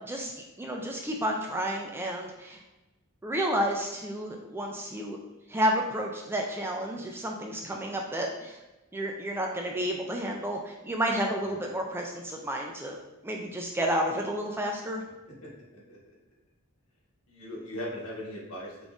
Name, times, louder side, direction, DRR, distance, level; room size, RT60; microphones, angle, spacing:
voice 1, 0.0-2.6 3.2-5.2 5.5-8.6 8.9-13.0 13.2-15.0, equal, 10° right, 0 dB, 0.3 m, -31 dB
voice 2, 15.4-16.1 17.3-18.7, left 1 dB, 85° left, -4 dB, 1.2 m, -39 dB
5.2 x 2.5 x 2.4 m, 1.1 s
head